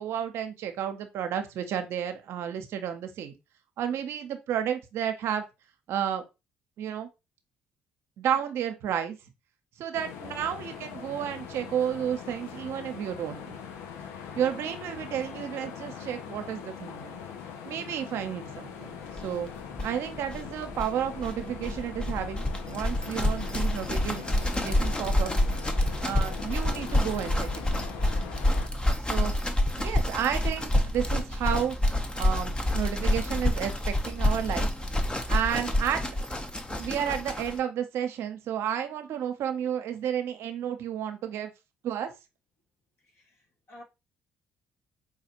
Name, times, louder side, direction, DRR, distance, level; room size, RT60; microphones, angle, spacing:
voice 1, 0.0-3.4 3.8-5.4 5.9-6.2 6.8-7.1 8.2-9.2 9.8-13.6 14.4-17.2 17.6-19.5 19.8-25.3 26.0-27.9 29.1-29.3 29.8-31.8 32.1-34.7 35.3-36.0 36.8-41.5 41.8-42.1, right 9 dB, 70° right, 0.6 m, -32 dB
sound 1, 9.9-28.7, left 7 dB, 80° left, 0.5 m, -41 dB
sound 2, 19.2-19.3 19.5-19.6 19.7-37.6, left 1 dB, 20° left, 0.7 m, -28 dB
voice 2, 43.0-43.8, left 1 dB, 60° left, 1.6 m, -52 dB
4.6 x 2.4 x 2.8 m
hypercardioid pair, 55°, 5 cm